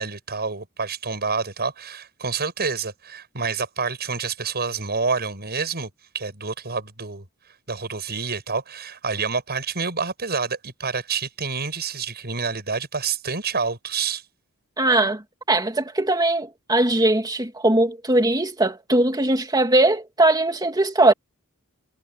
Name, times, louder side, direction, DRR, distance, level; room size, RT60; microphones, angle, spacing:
voice 1, 0.0-7.2 7.7-14.2, right 5 dB, 45° right, 7.6 m, -28 dB
voice 2, 14.8-15.2 15.5-21.1, right 2 dB, 20° right, 2.4 m, -20 dB
head